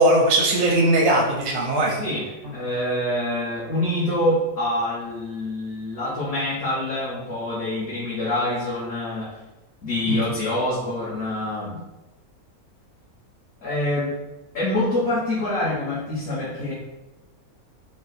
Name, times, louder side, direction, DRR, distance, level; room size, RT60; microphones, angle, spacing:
voice 1, 0.0-2.0 10.1-10.2, right 1 dB, 90° right, -2 dB, 1.1 m, -19 dB
voice 2, 1.9-9.3 9.8-11.8 13.6-14.1 14.5-16.7, left 1 dB, 50° left, -11 dB, 1.1 m, -26 dB
4.0 x 2.1 x 2.5 m, 1.1 s
omnidirectional pair, 1.5 m